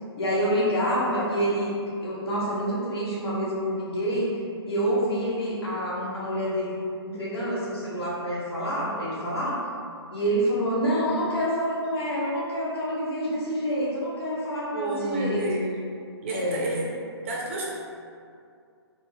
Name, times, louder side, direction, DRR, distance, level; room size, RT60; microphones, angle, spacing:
voice 1, 0.2-1.7 2.0-4.3 4.6-6.7 7.0-9.6 10.1-15.4 16.3-16.7, equal, 65° left, -7 dB, 1.3 m, -27 dB
voice 2, 14.7-15.8 16.2-16.9 17.2-17.7, right 2 dB, 25° right, -4 dB, 0.5 m, -30 dB
4.1 x 2.1 x 3.4 m, 2.4 s
hypercardioid pair, 155°, 14 cm